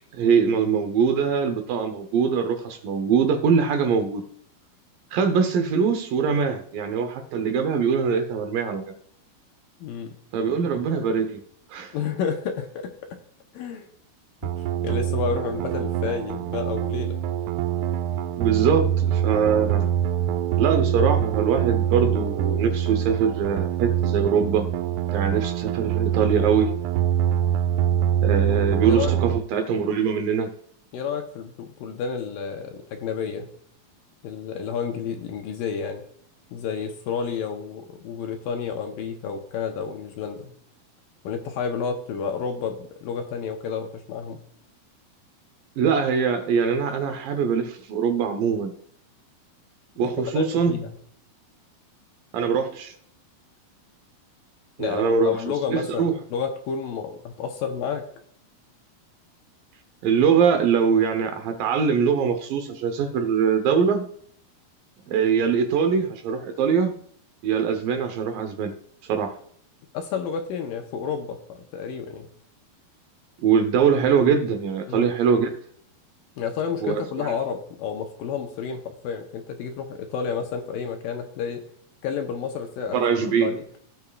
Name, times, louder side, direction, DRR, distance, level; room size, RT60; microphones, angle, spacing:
voice 1, 0.1-4.2 5.1-8.8 10.3-11.4 11.7-11.9 18.4-19.9 20.6-24.7 25.1-26.7 28.2-30.5 45.8-48.7 50.0-50.7 52.3-52.9 54.8-55.4 55.7-56.1 60.0-64.1 65.1-66.9 67.4-68.8 69.1-69.4 73.4-75.5 76.8-77.3 82.9-83.6, right 6 dB, 70° right, 7 dB, 2.4 m, -22 dB
voice 2, 9.8-10.2 11.9-12.9 13.5-13.9 14.4-17.2 28.4-28.5 28.9-29.1 30.9-33.5 34.2-36.0 36.5-40.5 41.2-44.4 50.0-50.9 54.8-58.1 69.9-72.3 74.9-75.1 76.4-81.6 82.0-83.6, left 6 dB, 75° left, 4 dB, 2.4 m, -30 dB
sound 1, 14.4-29.4, right 10 dB, 90° right, 2.6 m, -24 dB
17.5 x 6.2 x 2.4 m, 0.63 s
omnidirectional pair, 4.5 m